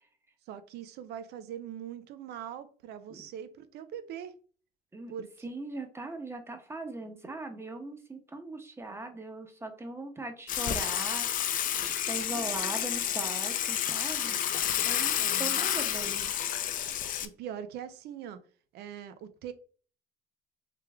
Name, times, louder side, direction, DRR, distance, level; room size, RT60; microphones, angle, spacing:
voice 1, 0.5-4.3 5.1-5.5 15.2-15.6 17.2-18.4 18.7-19.5, right 9 dB, 75° right, 0.5 m, -42 dB
voice 2, 5.4-16.3, right 2 dB, 15° right, 0.8 m, -40 dB
Water / Water tap faucet / Sink (filling or washing), 10.5-17.2, left 10 dB, 55° left, 0.5 m, -30 dB
3.4 x 3.3 x 3.4 m
cardioid pair, 110°, 17 cm